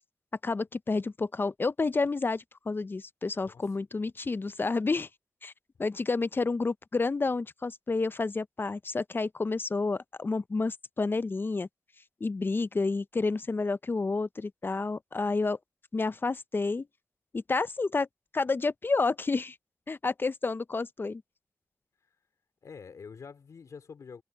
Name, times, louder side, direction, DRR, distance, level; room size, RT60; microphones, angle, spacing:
voice 1, 0.4-5.1 5.4-5.5 5.8-11.7 12.2-15.6 15.9-16.9 17.3-18.1 18.3-19.6 19.9-21.2, left 3 dB, 40° left, 0.6 m, -30 dB
voice 2, 22.6-24.2, left 5 dB, 80° left, 2.7 m, -46 dB
cardioid pair, 60°, 5 cm